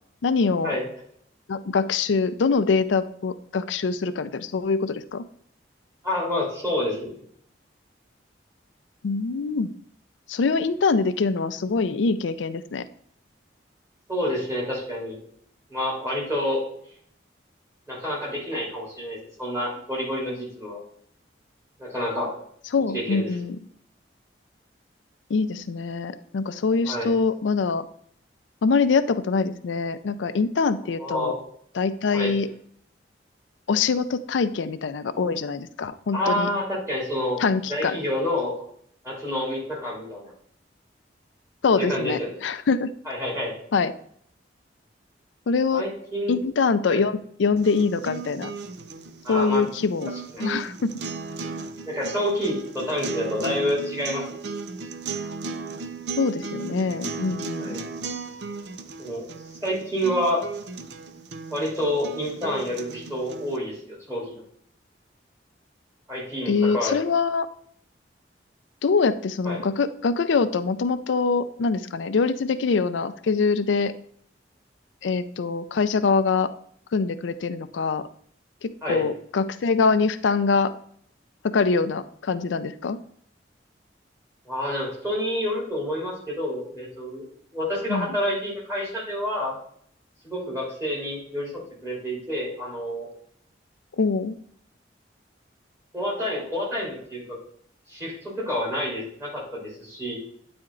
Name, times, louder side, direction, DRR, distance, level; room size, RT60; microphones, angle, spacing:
voice 1, 0.2-0.8 1.5-5.2 9.0-9.7 10.3-12.8 22.7-23.6 25.3-27.9 28.6-31.3 31.7-32.5 33.7-36.5 37.4-38.0 41.6-42.9 43.7-43.9 45.5-45.8 46.3-48.5 49.3-50.1 50.4-50.9 56.2-57.8 66.5-67.5 68.8-73.9 75.0-76.5 76.9-78.0 78.6-80.7 81.4-83.0 87.9-88.2 93.9-94.4, left 4 dB, 90° left, 12 dB, 0.4 m, -24 dB
voice 2, 6.0-7.1 14.1-15.2 15.7-16.6 17.9-20.8 21.8-22.3 22.9-23.5 26.8-27.1 31.0-31.4 32.1-32.3 36.1-37.4 37.7-38.5 39.0-40.3 41.7-42.3 43.1-43.5 45.7-46.4 46.9-47.1 49.2-49.6 50.3-50.5 51.9-54.2 57.6-57.8 59.0-59.3 59.6-60.4 61.5-64.2 66.1-66.9 69.4-69.6 78.8-79.0 84.5-87.3 87.5-89.6 90.2-91.5 91.8-93.1 95.9-97.2 97.9-100.2, left 1 dB, 15° right, -5 dB, 3.1 m, -28 dB
sound 1, 47.6-63.6, right 4 dB, 70° right, 0.6 m, -36 dB
9.0 x 4.3 x 3.7 m, 0.64 s
head